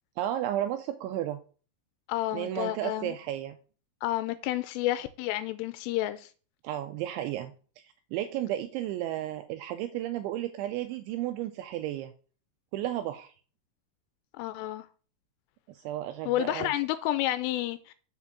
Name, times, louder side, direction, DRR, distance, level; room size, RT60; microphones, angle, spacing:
voice 1, 0.2-1.4 2.3-3.6 6.6-7.5 8.1-12.1 12.7-13.3 15.7-16.7, right 12 dB, 85° right, 2.8 m, -33 dB
voice 2, 2.1-3.1 4.0-6.3 14.4-14.9 16.3-17.9, left 15 dB, 85° left, 3.0 m, -30 dB
7.0 x 5.0 x 6.7 m
omnidirectional pair, 5.7 m